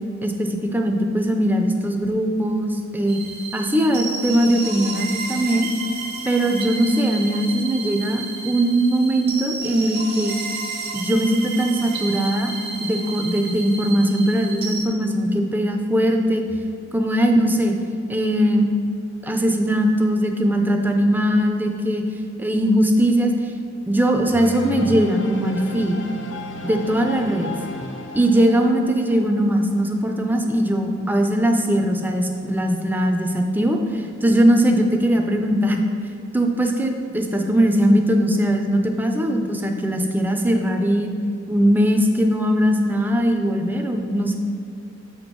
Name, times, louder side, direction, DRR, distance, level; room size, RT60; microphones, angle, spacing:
voice 1, 0.2-3.2 3.5-5.7 6.2-10.3 10.9-12.5 12.8-16.4 16.9-17.7 18.1-18.7 19.2-22.0 22.4-23.3 23.9-26.0 26.6-27.5 28.1-35.8 36.3-41.1 41.5-44.4, right 1 dB, 10° right, 3 dB, 0.4 m, -20 dB
sound 1, 3.1-14.9, right 4 dB, 55° right, 0.7 m, -32 dB
sound 2, 24.3-30.0, left 2 dB, 65° left, 0.5 m, -34 dB
7.2 x 4.3 x 4.5 m, 2.5 s
head